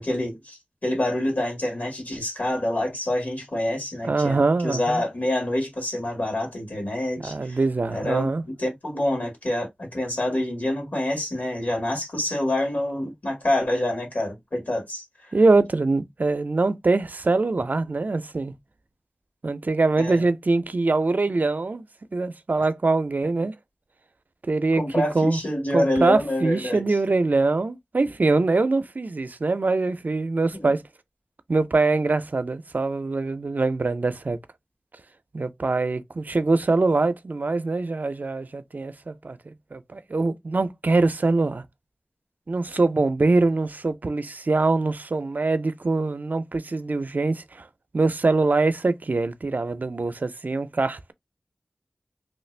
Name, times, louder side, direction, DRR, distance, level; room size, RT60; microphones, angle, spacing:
voice 1, 0.0-7.6 7.9-15.3 20.0-20.2 24.8-27.0 30.5-30.7, left 1 dB, 65° left, 1.8 m, -27 dB
voice 2, 4.0-5.0 7.2-8.4 15.3-18.5 19.4-21.9 22.1-23.5 24.4-25.4 25.7-30.8 31.5-34.4 35.3-41.6 42.5-47.7 47.9-51.1, right 3 dB, 65° right, 0.5 m, -23 dB
3.0 x 2.5 x 3.2 m
wide cardioid pair, 45°, 3 cm